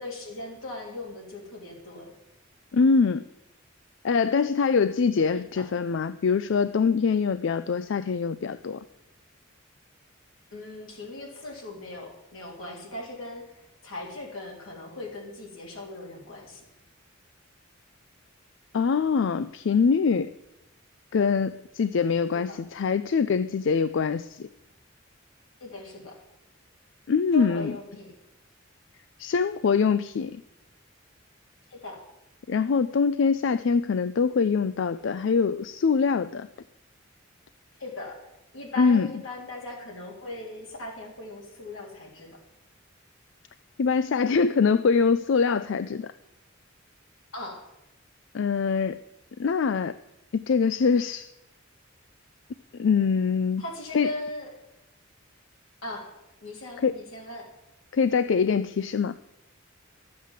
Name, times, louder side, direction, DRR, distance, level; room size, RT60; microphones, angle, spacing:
voice 1, 0.0-2.1 5.3-5.7 10.5-16.6 22.3-22.6 25.6-26.2 27.3-28.1 31.7-32.0 37.8-38.2 38.5-42.4 47.3-47.6 53.6-54.5 55.8-56.1 56.4-57.5, left 2 dB, 85° left, -1 dB, 3.6 m, -39 dB
voice 2, 2.7-3.2 4.0-8.8 18.7-20.3 21.1-24.5 27.1-27.8 29.2-30.4 32.5-36.5 38.8-39.1 43.8-46.1 48.3-49.0 49.4-50.0 50.3-51.3 52.8-53.6 53.9-54.1 56.8-57.0 57.9-59.2, left 5 dB, 60° left, 13 dB, 0.4 m, -23 dB
12.5 x 7.5 x 7.4 m, 0.90 s
head